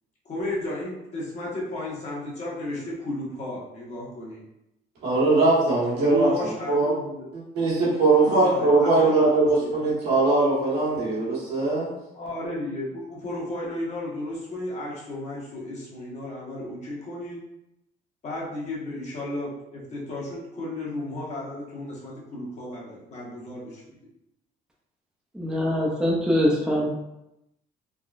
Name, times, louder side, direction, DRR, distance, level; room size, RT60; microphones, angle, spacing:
voice 1, 0.2-4.4 6.0-7.3 8.2-9.8 12.1-17.4 18.2-23.8, left 1 dB, 40° left, -5 dB, 1.1 m, -33 dB
voice 2, 5.0-6.9 7.3-11.9, right 3 dB, 80° right, -7 dB, 1.5 m, -21 dB
voice 3, 25.3-26.9, equal, 5° right, -3 dB, 0.5 m, -23 dB
3.6 x 2.1 x 2.5 m, 0.88 s
cardioid pair, 110°, 17 cm